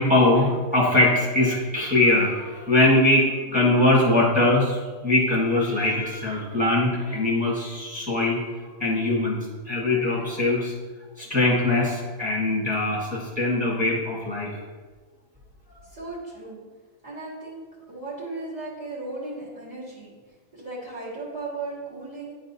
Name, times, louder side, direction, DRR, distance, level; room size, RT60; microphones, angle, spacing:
voice 1, 0.0-8.4 8.8-10.7 11.2-14.5, left 2 dB, 5° right, -7 dB, 1.8 m, -22 dB
voice 2, 15.8-16.6 17.0-20.1 20.5-22.3, right 3 dB, 30° right, -8 dB, 1.9 m, -36 dB
10.0 x 4.0 x 2.7 m, 1.4 s
omnidirectional pair, 1.4 m